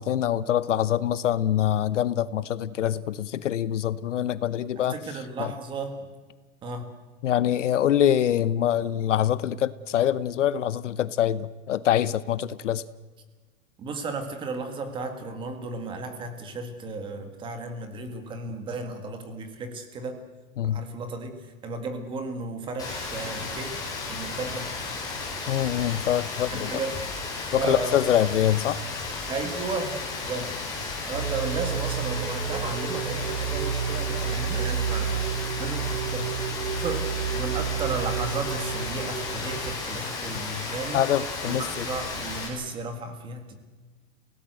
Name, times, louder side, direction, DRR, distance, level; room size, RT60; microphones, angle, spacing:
voice 1, 0.0-5.0 5.4-5.5 7.2-12.8 20.6-20.8 25.5-26.7 27.5-28.8 40.9-41.8, left 10 dB, 60° left, 17 dB, 0.9 m, -24 dB
voice 2, 4.8-6.1 6.6-6.9 13.8-20.2 20.6-23.8 24.0-24.7 26.5-27.0 27.5-28.0 29.3-30.6 31.0-35.2 35.6-41.0 41.4-43.5, right 3 dB, 10° right, 7 dB, 1.8 m, -34 dB
Rain, 22.8-42.5, left 3 dB, 10° left, 5.1 m, -34 dB
sound 1, 31.1-39.7, right 8 dB, 85° right, 2.4 m, -30 dB
29.5 x 18.0 x 7.9 m, 1.3 s
hypercardioid pair, 170°, 40 cm